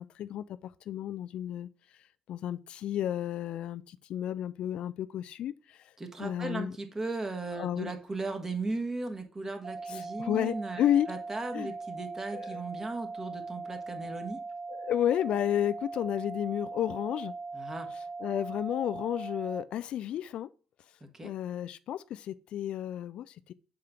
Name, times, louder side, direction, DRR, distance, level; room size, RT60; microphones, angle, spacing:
voice 1, 0.0-1.7 2.3-5.9 6.2-6.7 7.6-7.9 9.9-11.1 11.5-11.7 12.3-12.6 14.7-17.3 17.9-20.5 21.2-23.5, left 11 dB, 55° left, 0.3 m, -32 dB
voice 2, 6.0-14.4 17.5-17.9 21.1-21.3, right 3 dB, 25° right, 1.7 m, -37 dB
sound 1, 9.6-19.6, right 4 dB, 40° right, 0.3 m, -40 dB
7.5 x 3.7 x 5.8 m
figure-of-eight pair, 45°, 2 cm